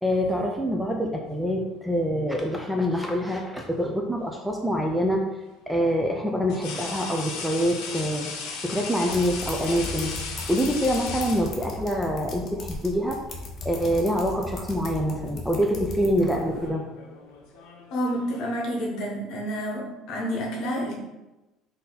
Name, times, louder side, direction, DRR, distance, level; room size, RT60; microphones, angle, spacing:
voice 1, 0.0-5.2 5.7-8.3 8.6-10.1 10.5-13.2 13.6-16.8, equal, ahead, 1 dB, 0.3 m, -25 dB
sound 1, 2.2-3.1 4.8-5.0 6.5-12.0 13.2-13.4 13.8-14.5 14.8-15.2 16.0-18.6, left 4 dB, 75° left, 0.7 m, -37 dB
sound 2, 9.1-16.7, left 2 dB, 35° left, 0.6 m, -37 dB
voice 2, 17.9-20.9, equal, 55° left, -1 dB, 1.0 m, -29 dB
3.9 x 2.7 x 3.9 m, 1.0 s
cardioid pair, 155°, 0 cm